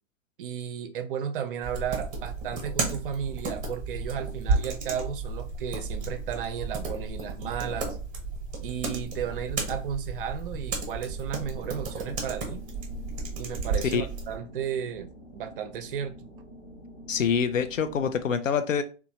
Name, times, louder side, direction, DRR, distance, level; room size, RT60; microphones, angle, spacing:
voice 1, 0.4-8.0 8.6-12.6 13.4-16.2, right 8 dB, 45° right, 0.5 m, -34 dB
sound 1, 1.6-14.4, right 3 dB, 20° right, 0.8 m, -33 dB
sound 2, 10.8-18.3, equal, 15° left, 0.4 m, -47 dB
voice 2, 17.1-18.8, left 6 dB, 90° left, 0.5 m, -25 dB
2.8 x 2.2 x 2.8 m
figure-of-eight pair, 120°, 37 cm